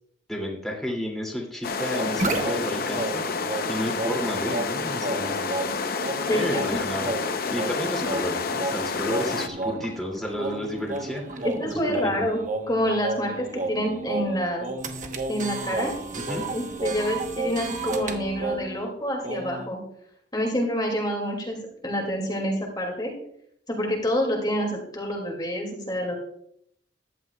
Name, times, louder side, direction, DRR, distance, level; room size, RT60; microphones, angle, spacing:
voice 1, 0.3-3.2 3.7-5.4 6.3-7.1 7.5-12.1 16.2-16.4, equal, ahead, -2 dB, 2.5 m, -31 dB
sound 1, 1.6-9.5, left 4 dB, 55° left, 0.7 m, -29 dB
sound 2, 1.9-18.9 19.2-19.7, right 2 dB, 45° right, 1.0 m, -32 dB
voice 2, 6.3-6.8 11.4-12.4 12.7-14.7 15.3-15.9 16.5-19.8 20.3-21.6 21.8-23.1 23.7-26.2, equal, 25° left, 0 dB, 2.3 m, -27 dB
14.5 x 11.0 x 2.3 m, 0.67 s
head